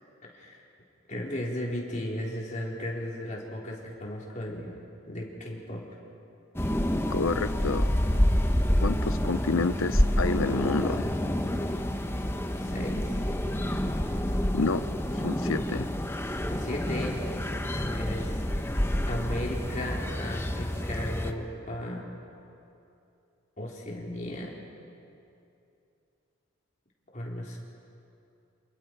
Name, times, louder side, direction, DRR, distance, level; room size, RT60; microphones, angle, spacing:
voice 1, 0.3-0.6 1.1-4.8 5.1-5.8 11.7-11.9 12.6-13.1 16.5-17.2 17.7-22.0 23.6-24.5 27.1-27.6, left 1 dB, 40° left, -3 dB, 4.2 m, -36 dB
sound 1, 6.6-21.3, equal, 10° left, 1.0 m, -28 dB
voice 2, 7.1-7.9 8.8-11.2 14.5-14.8 15.2-15.9, left 3 dB, 80° left, 11 dB, 0.8 m, -28 dB
28.5 x 28.0 x 4.7 m, 2.7 s
head